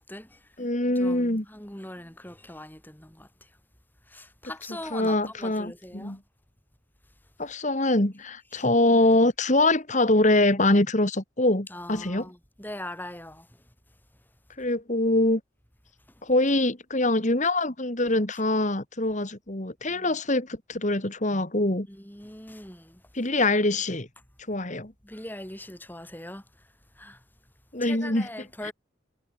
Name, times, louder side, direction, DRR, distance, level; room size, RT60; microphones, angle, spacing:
voice 1, 0.0-0.4 1.0-3.3 4.1-6.2 8.5-8.6 11.7-13.6 19.9-20.1 21.9-23.0 25.0-26.4 27.0-27.2 27.8-28.7, left 1 dB, 10° left, 4.7 m, -41 dB
voice 2, 0.6-1.4 4.9-6.2 7.4-12.3 14.6-15.4 16.2-21.9 23.1-24.1 24.5-24.9 27.7-28.3 28.6-28.7, left 2 dB, 35° left, 2.3 m, -24 dB
head